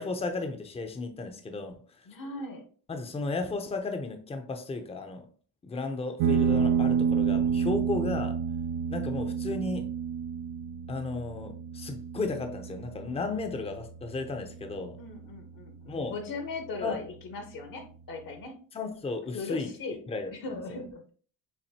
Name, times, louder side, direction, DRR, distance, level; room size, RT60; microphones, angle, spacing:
voice 1, 0.0-2.1 2.9-5.3 5.6-8.4 8.9-9.9 10.9-15.0 15.9-16.1 16.8-17.0 18.7-19.7 20.1-20.3, left 3 dB, 15° left, 0.6 m, -34 dB
voice 2, 2.1-2.6 15.0-18.5 19.3-20.0 20.3-21.0, left 3 dB, 55° left, 1.0 m, -38 dB
sound 1, 6.2-15.2, right 7 dB, 65° right, 0.6 m, -29 dB
7.2 x 2.6 x 2.8 m
cardioid pair, 115°, 40 cm